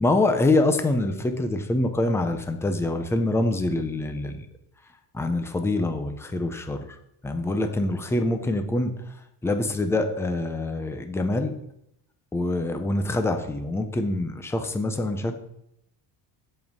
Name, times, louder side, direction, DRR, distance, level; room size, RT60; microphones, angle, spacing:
voice 1, 0.0-4.5 5.1-6.8 7.2-8.9 9.4-11.5 12.3-15.3, left 2 dB, 5° left, 6 dB, 0.6 m, -25 dB
7.6 x 5.4 x 6.1 m, 0.78 s
cardioid pair, 150°, 43 cm